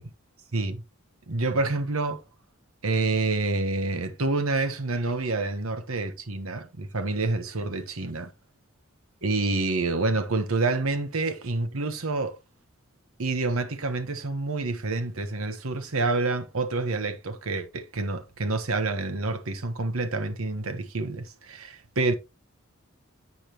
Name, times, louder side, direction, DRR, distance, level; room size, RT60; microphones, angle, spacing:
voice 1, 0.5-0.8 1.3-2.2 2.8-8.3 9.2-12.4 13.2-22.1, right 3 dB, 80° right, 1.2 m, -28 dB
8.3 x 6.8 x 3.0 m
head